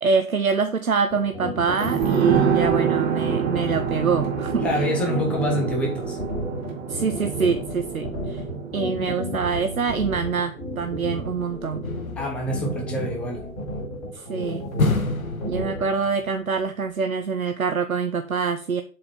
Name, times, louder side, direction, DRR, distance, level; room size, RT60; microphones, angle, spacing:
voice 1, 0.0-4.6 6.9-8.4 8.7-11.8 14.1-14.6 15.5-18.8, right 5 dB, 80° right, 9 dB, 0.8 m, -25 dB
sound 1, 1.1-15.8, equal, 25° left, 4.5 m, -32 dB
sound 2, 1.8-11.1 11.4-11.5, right 7 dB, 15° right, 1.0 m, -27 dB
voice 2, 4.6-6.2 12.2-13.5, equal, 5° left, 1 dB, 0.6 m, -26 dB
sound 3, 11.8-13.5 14.8-16.3 16.6-16.7, left 3 dB, 75° left, 1.3 m, -28 dB
7.3 x 5.0 x 5.8 m, 0.40 s
figure-of-eight pair, 125°, 42 cm